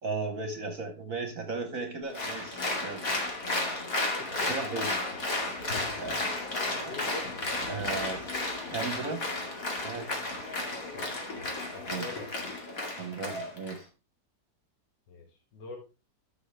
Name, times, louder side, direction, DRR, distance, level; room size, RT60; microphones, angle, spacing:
voice 1, 0.0-3.1 4.4-4.9 6.0-6.2 6.8-7.0 7.7-8.2 8.7-9.2 9.8-10.1 11.9-12.1 12.9-13.9, right 4 dB, 55° right, 5 dB, 1.5 m, -36 dB
Applause, 2.1-13.8, left 2 dB, 50° left, 2.7 m, -33 dB
voice 2, 4.2-4.5 6.8-7.3 10.9-11.2 11.7-12.4 15.1-15.8, left 2 dB, 75° left, 3 dB, 2.2 m, -44 dB
12.5 x 7.2 x 3.4 m, 0.31 s
omnidirectional pair, 1.9 m